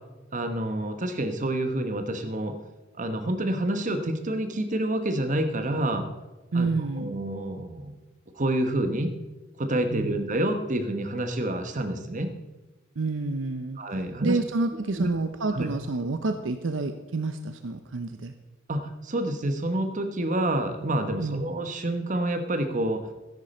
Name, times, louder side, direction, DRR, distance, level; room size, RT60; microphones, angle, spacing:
voice 1, 0.3-2.6 2.9-6.0 6.5-6.7 7.0-7.9 8.3-9.1 9.6-12.3 13.8-14.4 14.9-15.1 15.5-15.7 18.7-23.1, right 1 dB, 40° right, 7 dB, 1.1 m, -28 dB
voice 2, 6.5-7.1 9.9-10.1 13.0-13.8 14.2-18.3 21.2-21.4, right 3 dB, 65° right, 8 dB, 0.7 m, -28 dB
13.0 x 10.5 x 4.3 m, 1.1 s
head